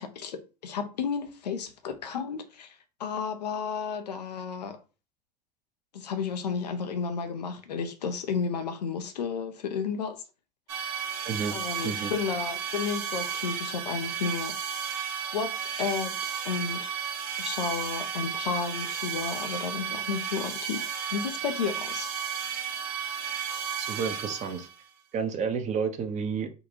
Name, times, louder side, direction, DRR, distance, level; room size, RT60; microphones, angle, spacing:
voice 1, 0.0-4.8 5.9-10.2 11.5-14.6 15.3-17.0 17.4-22.1, left 6 dB, 80° left, 0.6 m, -32 dB
sound 1, 10.7-24.8, right 8 dB, 65° right, 1.1 m, -33 dB
voice 2, 11.2-11.6 11.8-12.1 23.8-24.7 25.1-26.5, right 6 dB, 35° right, 0.8 m, -30 dB
3.8 x 2.3 x 2.9 m
hypercardioid pair, 80°, 21 cm